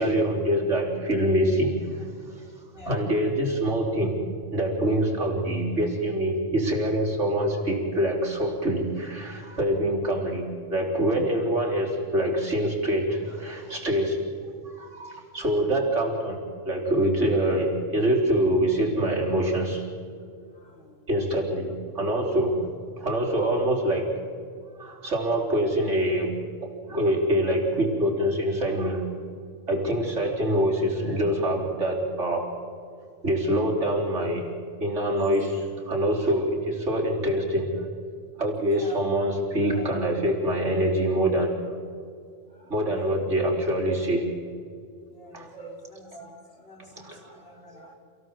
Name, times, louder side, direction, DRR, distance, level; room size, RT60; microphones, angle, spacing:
voice 1, 0.0-2.1 2.9-4.1 4.5-10.4 10.7-14.3 14.6-16.4 16.6-19.8 21.1-22.7 23.0-24.1 24.8-26.3 26.6-29.0 29.7-32.5 33.2-34.5 34.8-37.9 38.4-41.6 42.7-44.3 45.3-45.7 46.1-46.2 47.0-47.2 47.7-47.9, right 1 dB, 70° right, -1 dB, 4.1 m, -25 dB
voice 2, 20.6-21.0 38.7-39.0 42.5-43.1 45.1-47.9, left 1 dB, 50° left, 0 dB, 4.1 m, -48 dB
28.5 x 16.5 x 7.4 m, 2.3 s
omnidirectional pair, 1.3 m